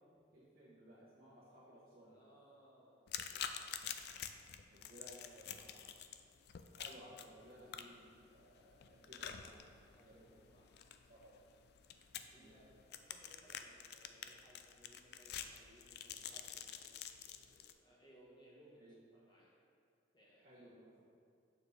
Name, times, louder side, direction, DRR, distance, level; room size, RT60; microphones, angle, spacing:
voice 1, 0.3-2.2 4.7-5.9 6.7-9.7 10.0-10.4 11.1-11.3 12.3-12.6 18.8-18.9 20.4-21.1, equal, 50° right, -10 dB, 1.2 m, -59 dB
voice 2, 2.0-3.6 4.9-5.0 9.9-10.8 11.1-11.3 12.3-16.9 17.2-18.8 19.1-19.5 20.1-20.6, equal, 25° left, -4 dB, 1.4 m, -65 dB
sound 1, 3.1-17.7, left 9 dB, 60° left, 0.4 m, -49 dB
7.0 x 6.6 x 3.4 m, 2.4 s
head